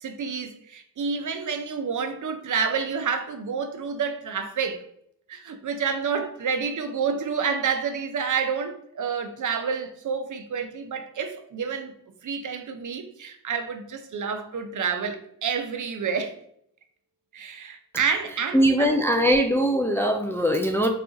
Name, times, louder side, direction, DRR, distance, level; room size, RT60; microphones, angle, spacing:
voice 1, 0.0-4.8 5.3-11.9 12.2-16.3 17.3-19.0, right 6 dB, 55° right, 0.6 m, -29 dB
voice 2, 18.5-20.9, equal, 5° left, 0.3 m, -21 dB
2.4 x 2.4 x 3.8 m
cardioid pair, 40°, 37 cm